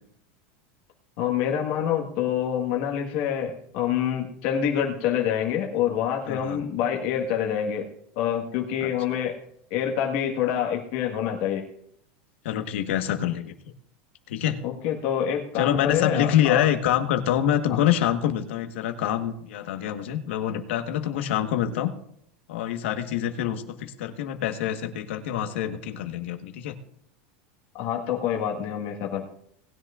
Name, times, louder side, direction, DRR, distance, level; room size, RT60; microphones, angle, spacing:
voice 1, 1.2-7.8 8.2-9.4 9.7-11.6 14.6-16.7 17.7-17.8 27.7-29.2, left 9 dB, 50° left, 1 dB, 1.5 m, -26 dB
voice 2, 6.3-6.6 8.8-8.9 12.4-13.5 14.3-14.6 15.6-21.9 22.5-26.8, left 10 dB, 90° left, 7 dB, 1.3 m, -26 dB
19.0 x 10.5 x 2.5 m, 0.70 s
supercardioid pair, 175°, 6 cm